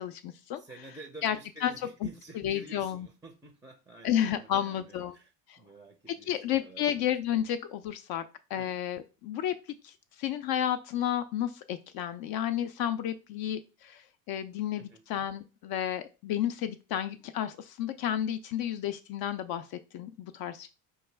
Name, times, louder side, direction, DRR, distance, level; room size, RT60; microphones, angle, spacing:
voice 1, 0.0-0.6 1.2-1.7 2.0-2.1 2.3-3.1 4.0-5.2 5.5-5.6 6.1-8.2 8.5-9.5 9.8-20.7, left 10 dB, 50° left, 9 dB, 0.4 m, -32 dB
voice 2, 0.6-5.3 5.6-6.9 8.6-8.8 14.8-15.0, right 2 dB, 5° right, 7 dB, 0.4 m, -50 dB
4.7 x 2.2 x 3.3 m, 0.31 s
hypercardioid pair, 80°, 48 cm